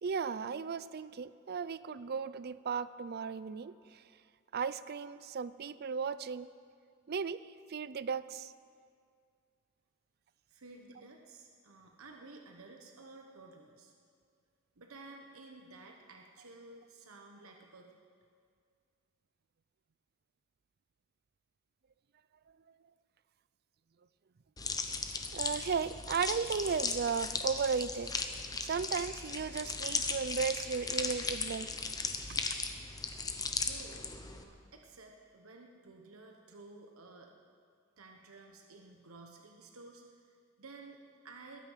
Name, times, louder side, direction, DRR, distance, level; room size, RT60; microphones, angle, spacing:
voice 1, 0.0-4.0 4.5-6.5 7.1-7.4 7.7-8.5 25.3-28.2 28.6-31.7 32.3-32.6, right 6 dB, 50° right, 16 dB, 0.4 m, -35 dB
voice 2, 10.5-13.9 14.8-17.9 33.6-37.3 38.0-41.6, right 3 dB, 85° right, 2 dB, 1.2 m, -53 dB
sound 1, 24.6-34.4, left 4 dB, 20° left, 0.9 m, -37 dB
21.5 x 9.3 x 5.7 m, 2.2 s
head